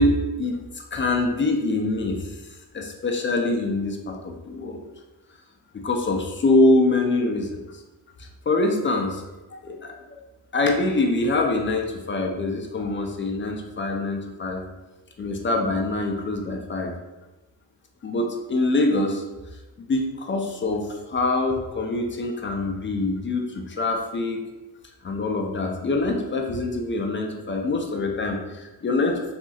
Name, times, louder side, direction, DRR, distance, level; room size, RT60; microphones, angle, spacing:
voice 1, 0.0-2.2 2.7-4.8 5.8-7.6 8.5-9.2 9.5-10.2 10.5-14.6 15.2-16.9 18.0-19.2 19.8-24.4 25.0-29.3, left 2 dB, 30° left, 2 dB, 0.3 m, -24 dB
2.8 x 2.5 x 2.4 m, 1.1 s
cardioid pair, 65°, 45 cm